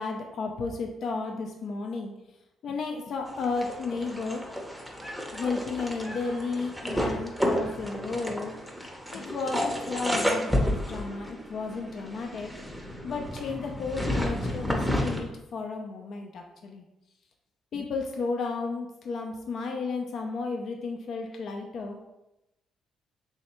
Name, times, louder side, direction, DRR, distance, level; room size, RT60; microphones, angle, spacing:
voice 1, 0.0-2.1 2.6-4.4 5.3-8.6 9.1-12.5 13.0-16.8 17.7-22.0, left 4 dB, 65° left, 2 dB, 0.5 m, -33 dB
sound 1, 3.3-15.2, equal, ahead, 0.7 m, -31 dB
3.2 x 2.8 x 4.2 m, 0.92 s
cardioid pair, 90°, 0 cm